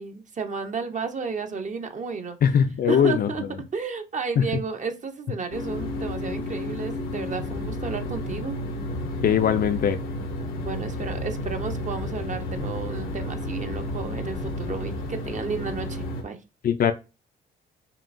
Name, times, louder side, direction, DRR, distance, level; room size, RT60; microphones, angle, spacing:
voice 1, 0.0-2.4 2.9-3.4 3.7-8.6 10.6-16.4, right 5 dB, 40° right, 0.7 m, -32 dB
voice 2, 2.4-3.3 4.4-4.5 9.2-10.0 16.6-16.9, left 8 dB, 50° left, 0.4 m, -20 dB
sound 1, 5.5-16.2, left 1 dB, 85° left, 0.9 m, -32 dB
5.6 x 2.4 x 2.5 m
cardioid pair, 90°, 20 cm